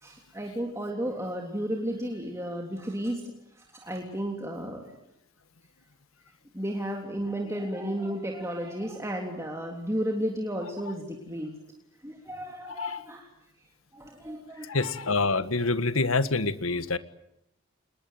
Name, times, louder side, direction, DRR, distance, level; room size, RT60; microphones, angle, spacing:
voice 1, 0.0-3.3 3.8-4.9 6.5-11.5 12.0-13.3 13.9-14.9, equal, 15° right, 1 dB, 3.3 m, -33 dB
voice 2, 12.6-13.0 14.7-17.0, left 3 dB, 80° left, 13 dB, 1.6 m, -26 dB
27.5 x 21.0 x 9.3 m, 0.80 s
head